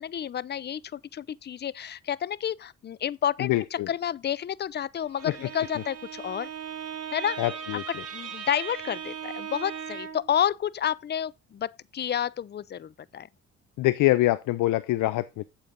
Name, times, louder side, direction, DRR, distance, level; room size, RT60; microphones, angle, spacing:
voice 1, 0.0-3.5 3.9-6.5 7.1-7.4 8.1-13.3, left 9 dB, 35° left, 0.5 m, -30 dB
voice 2, 3.4-3.9 5.2-5.3 7.4-8.0 13.8-15.4, left 17 dB, 85° left, 0.6 m, -25 dB
Bowed string instrument, 5.0-10.3, right 8 dB, 55° right, 2.8 m, -38 dB
8.7 x 7.2 x 3.6 m
cardioid pair, 90°, 30 cm